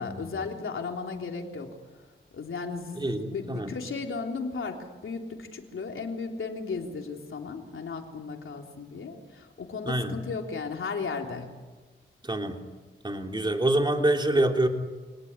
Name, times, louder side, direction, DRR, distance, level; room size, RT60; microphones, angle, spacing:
voice 1, 0.0-1.8 2.3-11.5, left 4 dB, 75° left, 2 dB, 3.6 m, -35 dB
voice 2, 3.0-3.7 9.9-10.2 12.2-12.6 13.0-14.7, right 1 dB, 20° right, 3 dB, 3.2 m, -26 dB
26.5 x 19.0 x 9.9 m, 1.3 s
cardioid pair, 75°, 21 cm